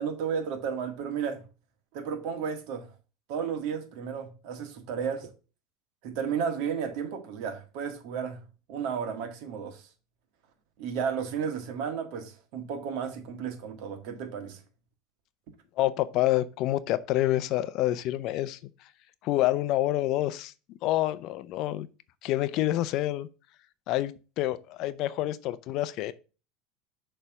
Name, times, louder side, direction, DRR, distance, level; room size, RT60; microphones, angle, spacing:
voice 1, 0.0-1.4 1.9-2.9 3.3-5.3 6.0-8.4 8.7-9.8 10.8-14.6, right 7 dB, 65° right, 1.6 m, -33 dB
voice 2, 15.8-18.7 19.2-20.5 20.8-21.9 22.2-23.3 23.9-26.1, left 15 dB, 55° left, 0.6 m, -27 dB
6.7 x 3.3 x 5.9 m
supercardioid pair, 110°, 0 cm